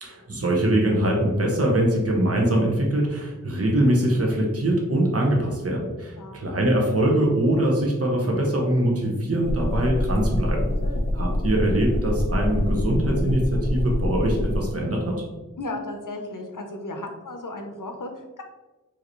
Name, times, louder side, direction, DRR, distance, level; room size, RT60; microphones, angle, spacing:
voice 1, 0.0-10.7 11.1-15.2, right 1 dB, 45° right, -1 dB, 0.9 m, -23 dB
sound 1, 9.4-14.6, left 1 dB, 40° left, 0.9 m, -26 dB
voice 2, 15.6-18.4, left 2 dB, 75° left, 4 dB, 0.7 m, -35 dB
5.0 x 2.8 x 3.0 m, 1.2 s
wide cardioid pair, 45°, 32 cm